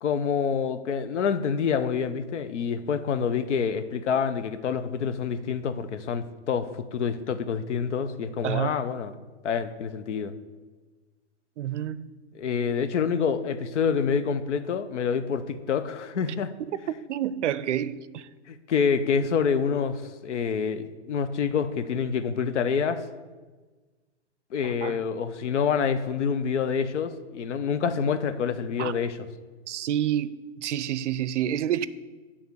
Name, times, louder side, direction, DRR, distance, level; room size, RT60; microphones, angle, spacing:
voice 1, 0.0-9.1 9.4-10.3 12.3-16.5 18.5-23.0 24.5-29.3, left 6 dB, 85° left, 0.7 m, -27 dB
voice 2, 8.4-8.8 11.6-12.1 16.6-16.7 17.1-18.3 24.6-25.0 28.8-28.9 29.7-31.9, right 11 dB, 90° right, 0.5 m, -29 dB
9.0 x 3.5 x 6.8 m
hypercardioid pair, 155°, 34 cm